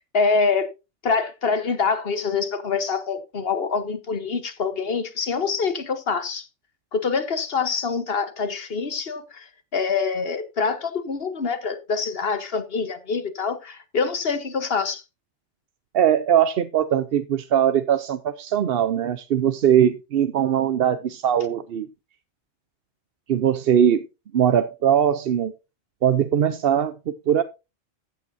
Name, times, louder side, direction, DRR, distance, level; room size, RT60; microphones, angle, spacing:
voice 1, 0.1-0.7 1.0-6.5 6.9-9.5 9.7-15.0, left 5 dB, 55° left, 1.4 m, -25 dB
voice 2, 15.9-21.9 23.3-24.1 24.3-25.5 26.0-27.4, right 9 dB, 60° right, 0.8 m, -21 dB
14.5 x 8.7 x 2.6 m
omnidirectional pair, 1.2 m